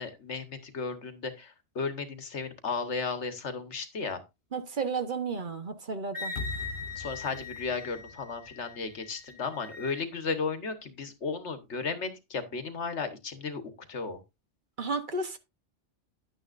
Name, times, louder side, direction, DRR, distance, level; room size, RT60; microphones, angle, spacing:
voice 1, 0.0-4.2 6.9-13.6 13.9-14.2, left 4 dB, 75° left, 1.6 m, -34 dB
voice 2, 4.5-6.3 14.8-15.4, right 4 dB, 45° right, 1.2 m, -32 dB
Wind instrument woodwind instrument, 6.1-10.0, left 4 dB, 30° right, 3.0 m, -41 dB
sound 1, 6.4-9.5, left 2 dB, 50° left, 1.0 m, -42 dB
10.5 x 9.4 x 2.5 m
omnidirectional pair, 1.2 m